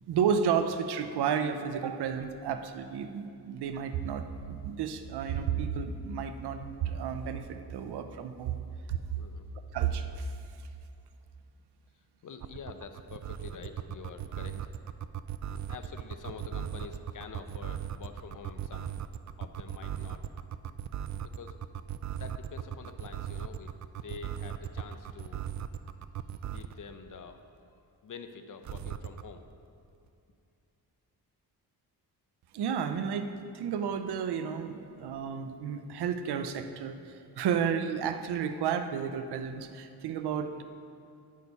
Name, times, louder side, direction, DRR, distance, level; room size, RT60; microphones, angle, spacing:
voice 1, 0.1-8.6 8.9-9.0 9.7-10.3 32.5-40.6, right 7 dB, 90° right, 9 dB, 0.7 m, -32 dB
voice 2, 9.2-9.5 12.2-14.7 15.3-18.9 19.4-20.2 21.2-21.6 22.1-25.8 26.2-27.4 27.7-29.5, left 5 dB, 55° left, 8 dB, 0.8 m, -47 dB
sound 1, 12.4-26.8 28.6-29.2, right 10 dB, 50° right, 0.4 m, -37 dB
9.5 x 6.6 x 5.4 m, 2.6 s
cardioid pair, 85°, 38 cm